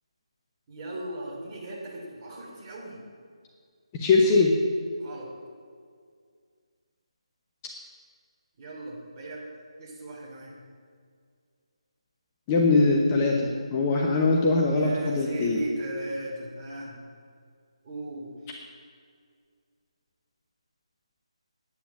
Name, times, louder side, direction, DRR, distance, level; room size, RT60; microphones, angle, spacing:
voice 1, 0.7-3.0 5.0-5.3 8.6-9.4 9.8-10.6 14.7-17.0 17.8-18.3, right 1 dB, 25° right, -4 dB, 3.1 m, -37 dB
voice 2, 3.9-4.5 12.5-15.6, left 3 dB, 20° left, -1 dB, 0.9 m, -22 dB
9.7 x 9.1 x 7.2 m, 2.1 s
figure-of-eight pair, 155°, 3 cm